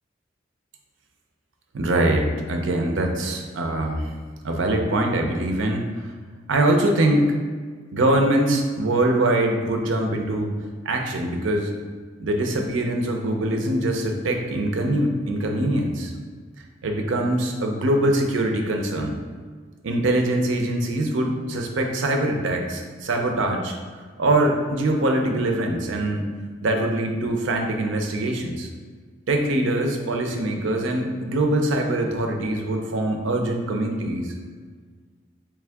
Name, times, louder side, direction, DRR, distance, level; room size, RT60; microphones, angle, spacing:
voice 1, 1.7-4.1 4.4-6.1 6.5-7.3 7.9-10.5 10.8-11.7 12.2-16.1 16.8-19.2 19.8-23.7 24.2-26.3 26.6-28.7 29.3-34.3, right 1 dB, 85° right, 3 dB, 0.5 m, -23 dB
3.6 x 3.1 x 3.4 m, 1.5 s
head